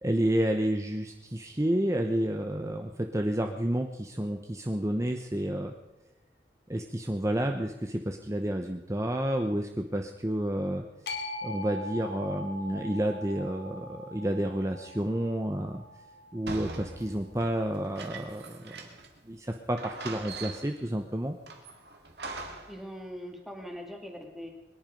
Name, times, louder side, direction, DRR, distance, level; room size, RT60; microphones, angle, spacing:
voice 1, 0.0-5.7 6.7-10.8 11.4-15.8 16.3-18.7 19.3-21.4, right 1 dB, 15° right, 4 dB, 0.8 m, -30 dB
sound 1, 11.1-17.3, left 2 dB, 65° left, 2.5 m, -42 dB
sound 2, 16.5-19.2 19.5-19.6 19.8-20.9 21.5-22.8, right 3 dB, 65° right, 2.3 m, -42 dB
voice 2, 22.7-24.5, equal, ahead, 2 dB, 2.1 m, -41 dB
23.5 x 10.5 x 5.2 m, 0.95 s
head